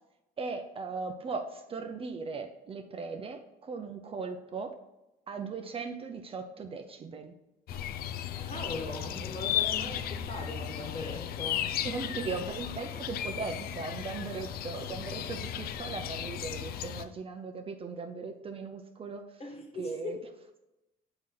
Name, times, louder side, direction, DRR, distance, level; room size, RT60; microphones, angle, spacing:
voice 1, 0.4-4.7 5.3-7.3 11.8-19.2 19.8-20.2, right 4 dB, 35° right, 5 dB, 0.5 m, -38 dB
sound 1, 7.7-17.0, left 10 dB, 65° left, 0.5 m, -35 dB
voice 2, 8.4-11.7 19.4-20.3, left 2 dB, 35° left, 2 dB, 1.4 m, -40 dB
6.1 x 4.4 x 3.8 m, 0.95 s
cardioid pair, 110°, 17 cm